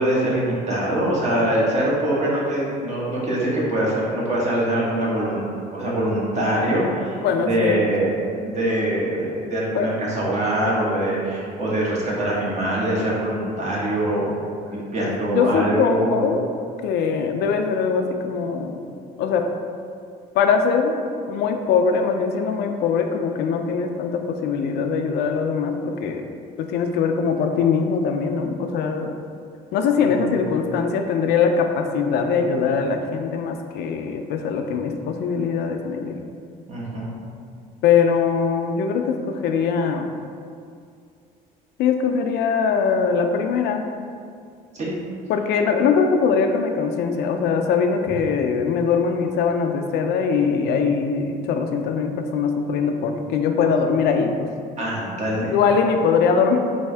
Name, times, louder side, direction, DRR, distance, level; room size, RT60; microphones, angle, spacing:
voice 1, 0.0-8.1 8.4-14.4 14.6-16.2 30.0-30.3 36.7-37.1 44.7-44.9 54.8-55.5, right 1 dB, 45° right, -5 dB, 1.2 m, -23 dB
voice 2, 7.2-7.8 9.7-9.9 15.3-16.5 16.8-18.8 19.2-19.5 20.4-21.0 21.3-26.3 26.6-29.1 29.7-36.2 37.8-40.1 41.8-43.8 45.3-54.5 55.5-56.6, left 6 dB, 75° left, 5 dB, 0.4 m, -21 dB
4.3 x 2.7 x 3.3 m, 2.3 s
cardioid pair, 110°, 17 cm